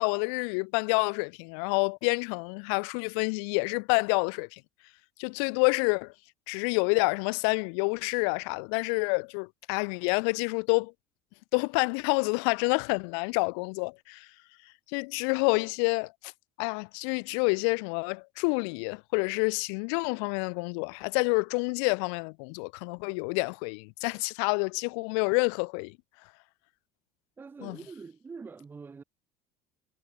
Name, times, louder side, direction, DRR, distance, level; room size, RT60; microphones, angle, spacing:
voice 1, 0.0-4.6 5.2-6.1 6.5-10.9 11.5-14.3 14.9-16.3 16.6-26.0 27.6-27.8, left 39 dB, 85° left, 0.7 m, -28 dB
voice 2, 27.4-29.0, right 5 dB, 15° right, 1.0 m, -44 dB
cardioid pair, 160°, 14 cm